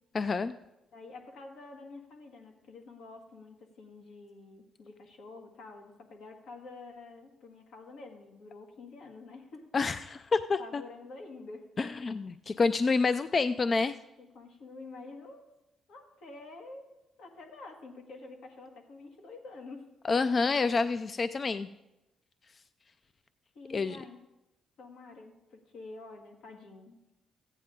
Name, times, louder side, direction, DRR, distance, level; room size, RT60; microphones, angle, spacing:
voice 1, 0.1-0.5 9.7-10.8 11.8-14.0 20.1-21.7 23.7-24.0, left 4 dB, 40° left, 12 dB, 0.3 m, -28 dB
voice 2, 0.9-9.7 10.6-11.7 14.2-15.5 15.9-16.9 17.2-19.9 23.5-24.2 24.8-27.0, left 3 dB, 80° left, 2 dB, 1.7 m, -48 dB
14.5 x 9.1 x 3.7 m, 0.96 s
cardioid pair, 90°, 0 cm